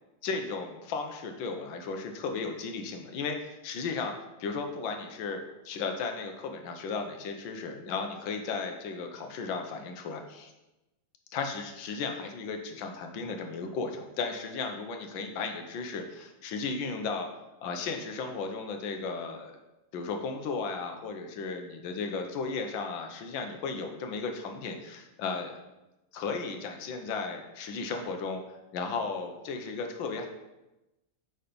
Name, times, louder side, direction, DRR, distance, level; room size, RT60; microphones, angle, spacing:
voice 1, 0.2-4.1 4.4-10.5 11.3-17.3 17.6-19.6 19.9-25.6 26.1-28.4 28.7-30.3, left 4 dB, 90° left, 4 dB, 1.6 m, -35 dB
8.7 x 4.0 x 5.2 m, 0.99 s
omnidirectional pair, 2.0 m